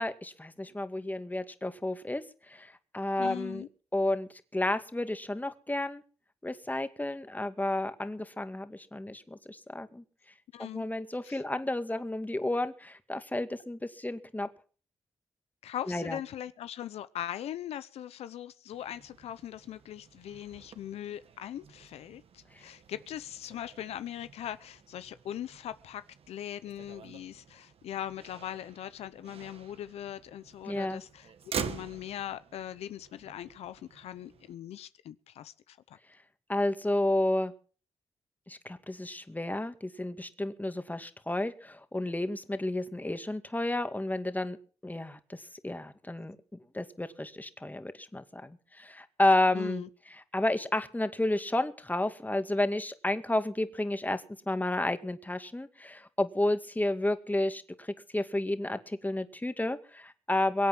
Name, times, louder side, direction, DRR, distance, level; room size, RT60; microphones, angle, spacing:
voice 1, 0.0-3.6 3.9-6.0 6.4-10.0 10.6-14.5 15.9-16.2 30.7-31.0 36.5-37.5 38.5-44.6 44.8-46.4 46.7-49.8 50.3-60.7, left 1 dB, 15° left, 10 dB, 2.3 m, -31 dB
voice 2, 3.2-3.7 10.5-10.8 11.2-11.4 15.6-26.0 26.3-36.0 49.5-49.9, left 11 dB, 85° left, 14 dB, 0.8 m, -40 dB
Motor vehicle (road), 18.7-34.5, right 7 dB, 70° right, 1.8 m, -46 dB
23.0 x 8.5 x 6.1 m, 0.42 s
supercardioid pair, 45°, 10 cm